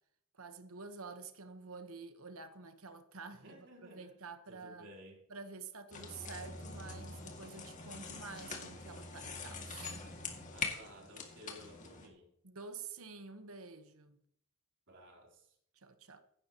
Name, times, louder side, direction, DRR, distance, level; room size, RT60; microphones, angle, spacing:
voice 1, 0.3-3.5 3.8-4.9 5.3-10.0 12.4-14.2 15.7-16.2, right 4 dB, 75° right, 1.3 m, -49 dB
voice 2, 3.4-4.1 4.5-5.2 10.4-12.3 14.9-15.6, equal, 55° right, 3.8 m, -55 dB
sound 1, 5.9-12.1, left 4 dB, 35° left, 2.3 m, -44 dB
16.0 x 12.5 x 3.1 m
head